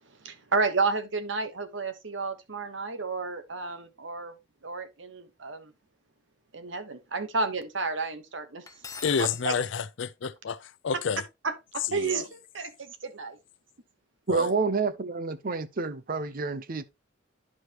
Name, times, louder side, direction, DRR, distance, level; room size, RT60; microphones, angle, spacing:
voice 1, 0.2-4.3 4.6-5.7 6.5-8.6 9.2-9.5 11.4-13.4, right 4 dB, 70° right, 1.1 m, -31 dB
Cutlery silverware, 8.7-9.4, left 5 dB, 15° left, 0.7 m, -41 dB
voice 2, 9.0-10.6 10.8-11.2 11.9-12.2 14.3-14.5, left 6 dB, 65° left, 0.5 m, -29 dB
voice 3, 14.3-16.8, right 4 dB, 45° right, 0.6 m, -28 dB
11.0 x 4.9 x 2.9 m
head